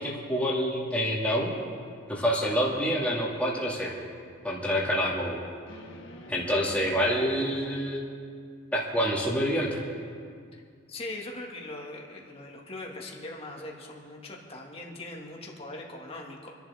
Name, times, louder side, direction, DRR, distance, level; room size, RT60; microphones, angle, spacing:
voice 1, 0.0-1.5 2.1-3.9 4.4-5.4 6.3-8.1 8.7-9.8, equal, 5° left, -5 dB, 2.4 m, -27 dB
sound 1, 3.3-3.6 5.7-7.6, left 1 dB, 75° left, 1.6 m, -47 dB
voice 2, 10.9-16.5, left 2 dB, 30° left, -1 dB, 2.2 m, -41 dB
28.5 x 11.0 x 3.6 m, 2.2 s
head